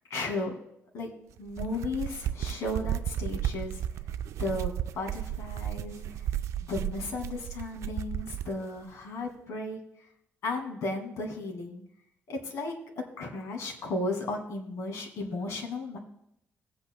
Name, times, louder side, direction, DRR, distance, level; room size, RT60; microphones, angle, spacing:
voice 1, 0.1-0.5 0.9-1.1 1.4-3.8 4.4-6.0 6.6-9.8 10.4-11.8 12.3-12.7 13.2-16.0, left 2 dB, 80° left, 2 dB, 2.1 m, -34 dB
sound 1, 1.4-8.6, right 11 dB, 80° right, 0.3 m, -34 dB
19.5 x 8.4 x 2.2 m, 0.76 s
cardioid pair, 160°, 5 cm